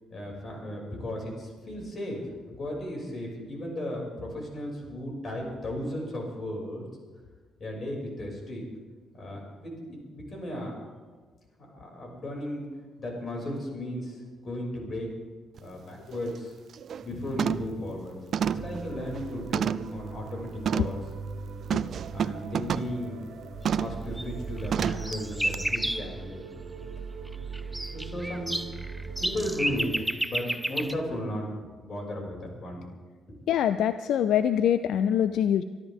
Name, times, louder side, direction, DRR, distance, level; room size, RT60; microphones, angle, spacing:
voice 1, 0.1-2.2 2.6-6.8 7.6-8.6 9.1-10.9 11.7-12.6 13.0-15.1 15.6-16.5 17.0-18.2 18.4-21.0 22.1-23.3 23.8-26.5 27.9-28.5 29.2-32.8 33.3-33.4, left 1 dB, 45° left, 0 dB, 6.1 m, -35 dB
sound 1, 15.6-15.7 16.1-16.4 16.7-17.1 17.4-17.8 18.3-20.0 20.6-21.0 21.7-23.0 23.6-24.0 24.7-25.1 25.5-25.6, right 8 dB, 60° right, 0.4 m, -29 dB
sound 2, 18.4-29.9, right 4 dB, 75° right, 1.7 m, -40 dB
sound 3, 24.2-24.3 24.6-26.1 27.3-30.9, right 1 dB, 5° right, 0.6 m, -31 dB
voice 2, 33.5-35.6, left 9 dB, 80° left, 11 dB, 0.4 m, -24 dB
25.5 x 12.5 x 3.6 m, 1.4 s
cardioid pair, 90°, 0 cm